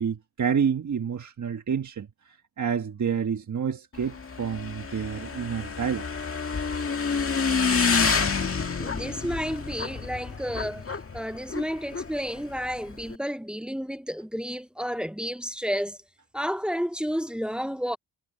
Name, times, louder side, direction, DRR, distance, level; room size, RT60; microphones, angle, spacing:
voice 1, 0.0-6.1, right 7 dB, 40° right, 1.4 m, -29 dB
Motorcycle / Engine, 3.9-13.2, left 5 dB, 30° left, 2.1 m, -28 dB
voice 2, 8.8-16.0 16.3-18.0, equal, ahead, 0.7 m, -31 dB
cardioid pair, 110°, 43 cm